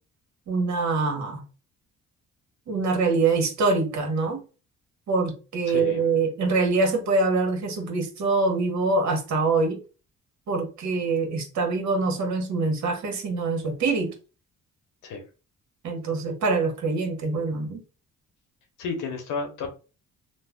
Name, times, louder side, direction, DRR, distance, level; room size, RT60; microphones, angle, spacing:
voice 1, 0.5-1.4 2.7-4.4 5.1-9.8 10.5-14.1 15.8-17.8, right 3 dB, 65° right, 1.2 m, -24 dB
voice 2, 5.7-6.0 15.0-15.2 18.8-19.7, left 5 dB, 90° left, 1.0 m, -31 dB
3.1 x 2.1 x 3.5 m
cardioid pair, 90°, 30 cm